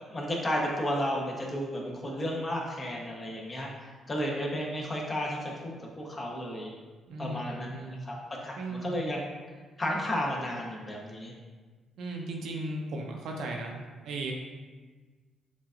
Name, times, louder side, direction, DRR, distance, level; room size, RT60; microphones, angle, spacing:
voice 1, 0.0-6.7 7.2-8.2 8.4-8.5 8.8-9.2 9.8-11.3, equal, 30° left, -2 dB, 1.0 m, -33 dB
voice 2, 7.1-8.0 8.6-9.0 12.0-13.7 14.0-14.3, right 2 dB, 80° right, 0 dB, 0.7 m, -36 dB
7.2 x 2.5 x 2.5 m, 1.4 s
cardioid pair, 90°, 0 cm